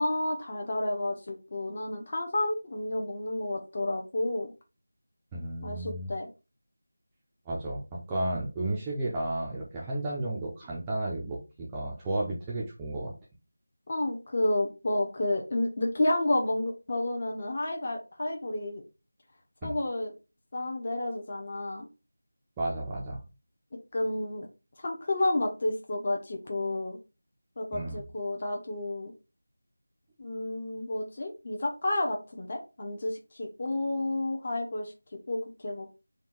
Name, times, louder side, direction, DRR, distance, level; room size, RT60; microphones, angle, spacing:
voice 1, 0.0-4.5 5.6-6.3 13.9-18.8 19.6-20.1 20.5-21.9 23.9-24.5 24.8-27.0 27.6-29.1 30.2-34.9 35.3-35.9, left 1 dB, 35° left, 2 dB, 0.8 m, -30 dB
voice 2, 5.3-6.1 7.5-13.1 19.6-19.7 22.6-23.2 27.7-28.0, right 1 dB, 10° right, -4 dB, 0.6 m, -33 dB
3.7 x 2.3 x 4.4 m, 0.28 s
figure-of-eight pair, 175°, 0 cm